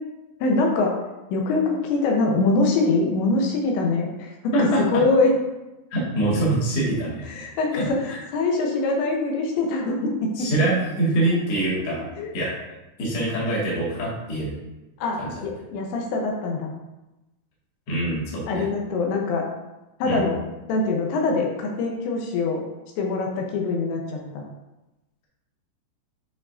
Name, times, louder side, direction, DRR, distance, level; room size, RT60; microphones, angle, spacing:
voice 1, 0.4-1.0 1.3-5.3 7.3-10.5 12.2-12.4 15.0-16.7 18.5-19.5 20.0-20.4 20.7-22.6 23.0-24.4, left 3 dB, 85° left, 0 dB, 3.0 m, -23 dB
voice 2, 4.5-5.0 5.9-7.3 7.7-8.2 10.4-12.0 12.3-12.5 13.0-14.5 15.2-15.3 17.9-18.6 20.0-20.3, right 1 dB, 50° left, -6 dB, 2.1 m, -24 dB
8.4 x 4.8 x 2.6 m, 1.0 s
omnidirectional pair, 5.2 m